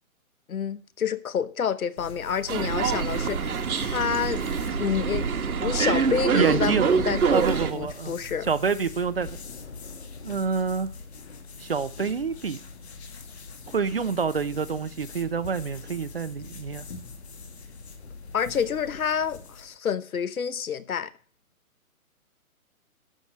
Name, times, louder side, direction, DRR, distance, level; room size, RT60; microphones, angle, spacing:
voice 1, 0.5-3.5 3.8-4.4 4.7-7.4 7.7-8.5 18.3-21.1, left 7 dB, 70° left, 1.0 m, -28 dB
sound 1, 2.0-19.8, left 4 dB, 45° left, 1.7 m, -42 dB
sound 2, 2.5-7.7, right 6 dB, 75° right, 1.6 m, -25 dB
voice 2, 6.3-6.9 7.3-8.1 8.5-9.4 10.2-10.9 11.6-12.6 13.7-16.9, right 5 dB, 40° right, 0.6 m, -27 dB
13.0 x 4.9 x 7.8 m
hypercardioid pair, 170°, 43 cm